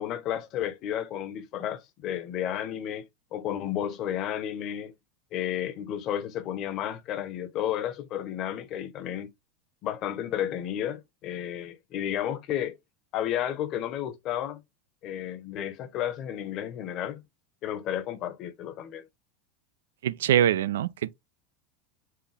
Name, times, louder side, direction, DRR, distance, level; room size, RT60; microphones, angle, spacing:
voice 1, 0.0-3.0 3.3-4.9 5.3-9.3 9.8-12.8 13.1-14.6 15.0-17.2 17.6-19.0, left 10 dB, 50° left, 0.9 m, -32 dB
voice 2, 20.0-21.1, right 10 dB, 80° right, 0.4 m, -24 dB
4.7 x 2.6 x 3.4 m
hypercardioid pair, 95°, 0 cm